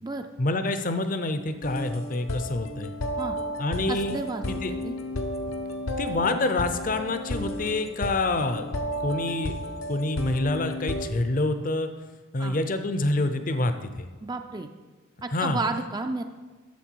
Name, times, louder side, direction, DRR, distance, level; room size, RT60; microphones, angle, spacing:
voice 1, 0.4-2.9 3.6-4.2 4.5-4.7 6.0-8.7 9.0-9.5 9.9-11.9 12.3-14.1 15.3-15.6, left 2 dB, 40° left, 9 dB, 0.6 m, -27 dB
sound 1, 1.6-11.1, left 1 dB, 85° left, 0.9 m, -33 dB
voice 2, 3.9-4.9 12.4-12.6 14.2-14.7 15.2-16.2, right 3 dB, 20° right, 6 dB, 0.4 m, -32 dB
11.5 x 7.5 x 4.6 m, 1.3 s
head